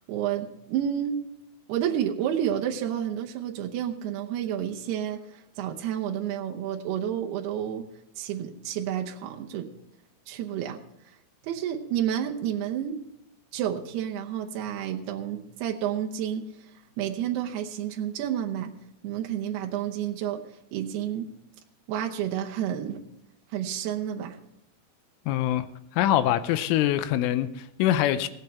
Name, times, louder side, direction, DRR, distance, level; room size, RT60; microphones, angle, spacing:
voice 1, 0.1-1.2 1.7-7.9 8.2-9.7 10.3-10.8 11.4-13.0 13.5-16.5 17.0-18.7 19.0-20.4 20.7-21.3 21.9-23.0 23.5-24.4, right 10 dB, 85° right, 2 dB, 2.3 m, -30 dB
voice 2, 25.3-25.7 25.9-28.3, left 12 dB, 80° left, 12 dB, 3.0 m, -24 dB
17.5 x 8.9 x 4.3 m, 0.87 s
omnidirectional pair, 5.9 m